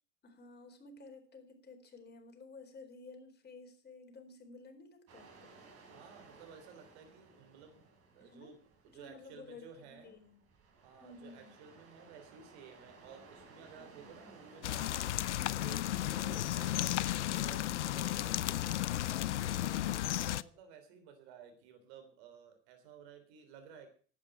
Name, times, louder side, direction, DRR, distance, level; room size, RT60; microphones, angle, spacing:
voice 1, 0.2-5.6 8.2-8.6 8.9-10.4 11.0-11.6 13.7-14.3, left 3 dB, 30° left, 4 dB, 4.2 m, -54 dB
sound 1, 5.1-18.5, right 3 dB, 45° right, 5.2 m, -60 dB
voice 2, 5.9-7.9 8.1-8.6 8.8-10.1 10.8-15.1 15.6-18.5 19.5-23.9, right 6 dB, 65° right, 6 dB, 3.6 m, -54 dB
sound 2, 14.6-20.4, left 13 dB, 85° left, 0.5 m, -34 dB
11.5 x 8.7 x 7.5 m, 0.42 s
hypercardioid pair, 80°, 34 cm